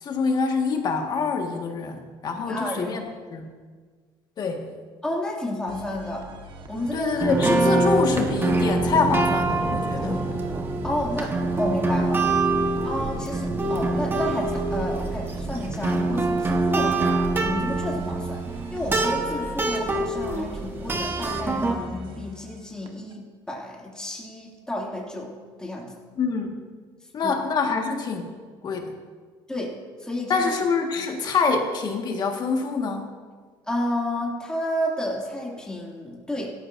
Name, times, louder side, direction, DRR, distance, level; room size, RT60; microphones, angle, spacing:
voice 1, 0.0-3.0 3.3-3.5 4.4-4.6 6.9-10.2 26.2-26.6 27.1-28.3 28.6-28.9 30.3-33.1, left 4 dB, 45° left, 3 dB, 1.7 m, -25 dB
voice 2, 2.4-3.0 5.0-6.3 6.7-7.2 10.0-12.2 12.8-17.2 17.4-18.4 18.7-25.3 25.6-26.0 27.2-27.4 29.5-30.4 33.7-36.5, left 1 dB, 5° left, -3 dB, 2.5 m, -31 dB
sound 1, 5.7-23.1, right 4 dB, 50° right, 1.4 m, -42 dB
sound 2, 6.8-6.9 7.2-21.7, right 2 dB, 20° right, 1.2 m, -25 dB
16.5 x 13.0 x 2.7 m, 1.5 s
cardioid pair, 120°, 10 cm